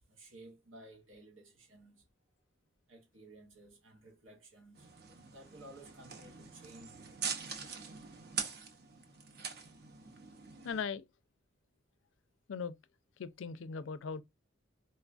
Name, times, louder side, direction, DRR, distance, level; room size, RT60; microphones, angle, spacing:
voice 1, 0.1-2.1 2.9-7.6, right 1 dB, 85° right, 0.9 m, -56 dB
sound 1, 4.8-10.8, right 6 dB, 50° right, 0.7 m, -43 dB
voice 2, 10.6-11.1 12.5-12.7 13.2-14.2, left 5 dB, 75° left, 0.4 m, -38 dB
4.2 x 2.3 x 2.4 m
head